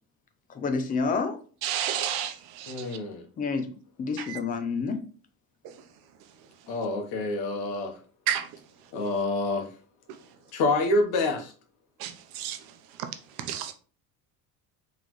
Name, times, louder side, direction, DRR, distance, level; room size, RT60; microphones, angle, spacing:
voice 1, 0.5-1.4 3.4-3.7 4.0-5.0, left 4 dB, 25° left, 0.5 m, -28 dB
voice 2, 1.6-2.7 8.3-8.5 12.0-12.6 13.5-13.7, right 10 dB, 80° right, 0.8 m, -30 dB
voice 3, 2.7-3.2 6.7-8.0 8.9-9.7 10.5-11.5, left 2 dB, 85° left, 1.1 m, -27 dB
4.1 x 3.3 x 3.0 m
cardioid pair, 170°, 37 cm